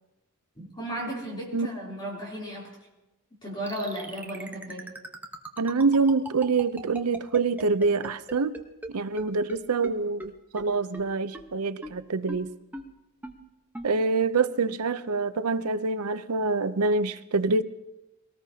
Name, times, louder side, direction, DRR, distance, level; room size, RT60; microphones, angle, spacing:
voice 1, 0.5-2.8 3.4-4.9, right 1 dB, 20° left, -4 dB, 3.3 m, -35 dB
sound 1, 3.7-8.9 9.2-9.3 9.5-9.6 9.8-9.9 10.2-10.3 10.6-10.7 10.9-11.0 11.3-11.4 11.8-11.9 12.3-12.4 12.7-12.8 13.2-13.3 13.7-13.9, right 1 dB, 10° right, 1.0 m, -38 dB
voice 2, 5.6-8.6 8.9-12.5 13.8-17.6, right 4 dB, 90° right, 13 dB, 0.7 m, -26 dB
22.5 x 18.5 x 2.8 m, 0.98 s
head